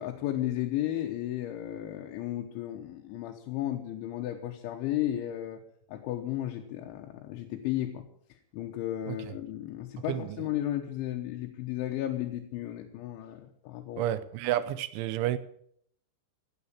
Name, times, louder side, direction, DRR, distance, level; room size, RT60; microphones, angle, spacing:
voice 1, 0.0-5.6 5.9-8.1 8.3-14.1, left 13 dB, 85° left, 2 dB, 3.5 m, -34 dB
voice 2, 14.0-15.4, right 13 dB, 85° right, 14 dB, 3.2 m, -30 dB
16.0 x 9.3 x 8.6 m, 0.66 s
omnidirectional pair, 5.3 m